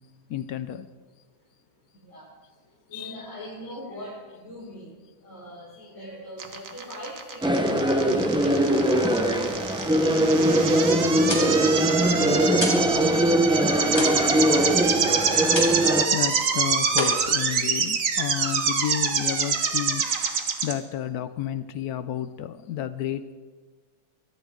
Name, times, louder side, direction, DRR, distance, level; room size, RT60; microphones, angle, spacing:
voice 1, 0.3-0.9 2.9-3.3 3.7-3.8 13.8-13.9 16.1-20.1 20.6-23.3, left 11 dB, 70° left, 13 dB, 1.0 m, -31 dB
voice 2, 1.9-2.3 2.6-10.6 11.2-14.9 16.9-17.0, left 1 dB, 45° left, -10 dB, 5.9 m, -41 dB
sound 1, 6.4-20.7, right 6 dB, 50° right, 1.4 m, -26 dB
sound 2, 7.4-16.1, right 1 dB, 5° right, 0.5 m, -21 dB
sound 3, 11.2-12.9 13.2-16.0 16.3-16.6 16.9-18.0, left 1 dB, 15° left, 2.8 m, -32 dB
23.0 x 13.0 x 3.7 m, 1.4 s
omnidirectional pair, 1.9 m